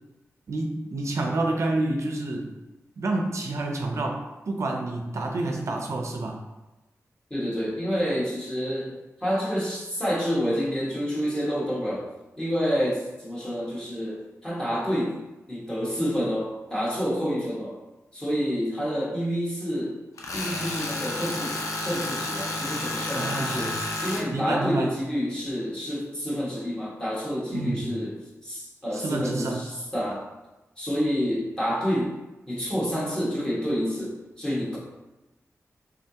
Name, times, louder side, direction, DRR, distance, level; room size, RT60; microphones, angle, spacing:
voice 1, 0.5-2.5 3.0-6.4 23.1-23.7 24.3-24.9 27.5-27.9 28.9-29.6, right 2 dB, 70° right, 2 dB, 0.5 m, -28 dB
voice 2, 7.3-12.0 12.4-17.8 18.1-20.0 20.3-28.1 28.4-30.2 30.8-32.2 32.5-34.8, equal, 15° left, -6 dB, 1.3 m, -28 dB
Tools, 20.2-24.2, left 2 dB, 85° left, 0.5 m, -31 dB
3.7 x 3.3 x 2.8 m, 1.0 s
wide cardioid pair, 85°, 5 cm